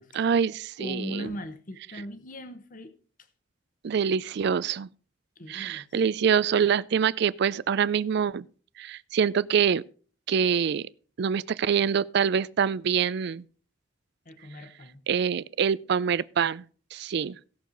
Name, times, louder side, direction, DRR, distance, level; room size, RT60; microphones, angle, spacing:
voice 1, 0.1-1.3 3.8-4.9 5.5-8.5 8.8-9.8 10.3-10.9 11.2-13.4 15.1-16.6 16.9-17.4, right 7 dB, 60° right, 0.4 m, -25 dB
voice 2, 0.8-2.9 5.4-5.9 14.2-15.0, left 1 dB, 45° left, 0.9 m, -39 dB
17.0 x 6.5 x 3.9 m
head